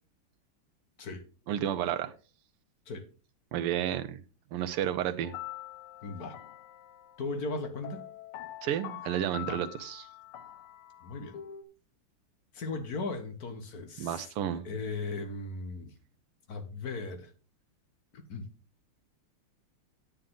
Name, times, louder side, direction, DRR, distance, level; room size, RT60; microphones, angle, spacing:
voice 1, 1.5-2.1 3.5-4.2 4.5-5.3 8.6-10.1 14.0-14.6, right 10 dB, 85° right, 1.7 m, -31 dB
sound 1, 5.2-11.6, left 12 dB, 90° left, 1.9 m, -45 dB
voice 2, 6.0-6.4 7.2-8.1 9.5-9.6 11.0-11.4 12.5-15.9 16.5-17.3 18.1-18.5, left 3 dB, 50° left, 1.7 m, -37 dB
10.0 x 8.9 x 3.8 m
omnidirectional pair, 2.4 m